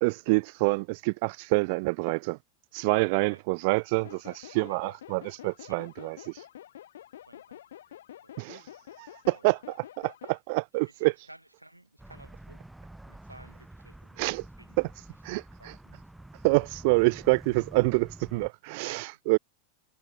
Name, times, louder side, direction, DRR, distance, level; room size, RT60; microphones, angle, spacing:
voice 1, 0.0-2.4 2.7-6.5 8.4-8.7 9.0-11.1 14.2-14.5 14.8-14.9 15.2-15.7 16.4-19.4, right 29 dB, 45° right, 0.7 m, -27 dB
sound 1, 4.0-10.4, left 11 dB, 60° left, 0.8 m, -48 dB
voice 2, 7.2-7.7 8.2-8.4 9.3-9.5 10.8-12.6 13.1-14.8 15.3-16.1 18.7-19.2, right 1 dB, 85° right, 7.0 m, -55 dB
sound 2, 12.0-18.5, right 1 dB, 5° right, 3.6 m, -48 dB
figure-of-eight pair, 90°, 0 cm